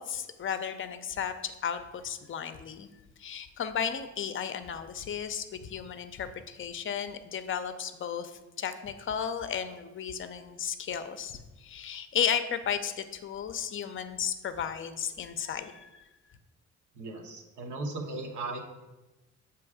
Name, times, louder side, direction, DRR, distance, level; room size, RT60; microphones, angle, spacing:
voice 1, 0.0-2.9 3.2-16.1, left 8 dB, 45° left, 10 dB, 0.5 m, -34 dB
voice 2, 16.9-18.6, right 2 dB, 80° right, 3 dB, 1.1 m, -37 dB
7.0 x 3.1 x 4.8 m, 1.1 s
cardioid pair, 90°, 30 cm